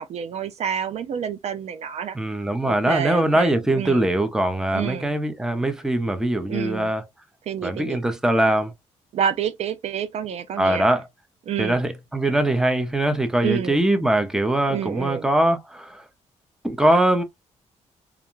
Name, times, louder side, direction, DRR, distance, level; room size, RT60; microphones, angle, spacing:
voice 1, 0.0-2.2 2.6-4.1 4.7-5.1 6.5-6.9 7.5-8.0 9.1-10.9 11.5-11.8 13.4-13.8 14.7-15.3, right 8 dB, 60° right, 0.4 m, -28 dB
voice 2, 2.1-7.0 7.6-8.7 10.6-11.0 11.6-16.0 16.6-17.2, right 1 dB, 5° right, 0.5 m, -22 dB
2.4 x 2.2 x 3.0 m
cardioid pair, 90°, 12 cm